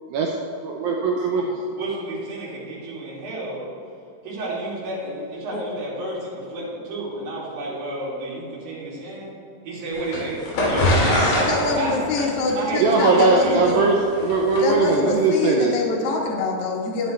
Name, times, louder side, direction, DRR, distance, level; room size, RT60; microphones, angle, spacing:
voice 1, 0.6-1.5 12.8-14.0 14.2-15.7, right 4 dB, 80° right, 0 dB, 2.2 m, -20 dB
voice 2, 1.8-3.7 4.2-9.3 9.6-11.9 12.6-13.8, right 2 dB, 60° right, -6 dB, 4.0 m, -30 dB
sound 1, 9.9-14.7, left 1 dB, 60° left, 4.2 m, -23 dB
voice 3, 11.5-13.8 14.6-17.1, left 3 dB, 75° left, -1 dB, 1.4 m, -24 dB
11.5 x 10.0 x 3.3 m, 2.7 s
omnidirectional pair, 4.8 m